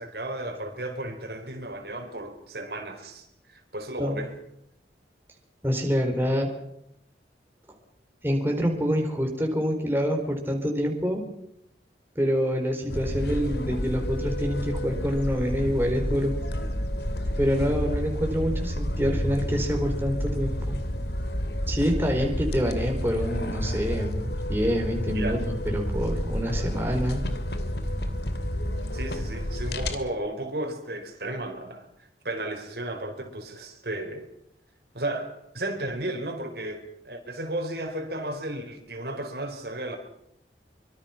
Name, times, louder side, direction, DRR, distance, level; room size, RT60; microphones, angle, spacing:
voice 1, 0.0-4.3 17.7-17.8 25.1-25.4 28.9-31.9 32.2-34.3 34.9-40.0, right 1 dB, 65° right, 4 dB, 4.7 m, -34 dB
voice 2, 5.6-6.5 8.2-11.2 12.1-16.3 17.4-20.8 21.7-27.2, equal, 10° right, 1 dB, 4.6 m, -26 dB
sound 1, 12.9-30.0, equal, 70° left, 2.9 m, -30 dB
25.5 x 25.0 x 6.0 m, 0.75 s
head